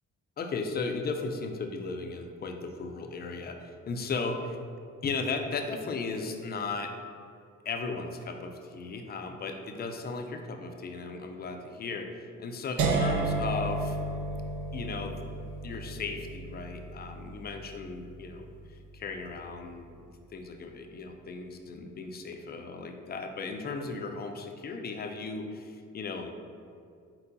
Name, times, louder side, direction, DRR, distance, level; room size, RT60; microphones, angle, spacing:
voice 1, 0.4-4.6 5.0-6.9 7.6-14.0 14.7-15.2 15.6-18.5 18.9-19.9 20.3-26.3, left 4 dB, 35° left, 4 dB, 0.4 m, -36 dB
sound 1, 12.8-18.7, right 3 dB, 75° right, 0.6 m, -33 dB
4.3 x 3.9 x 2.6 m, 2.4 s
cardioid pair, 90°, 30 cm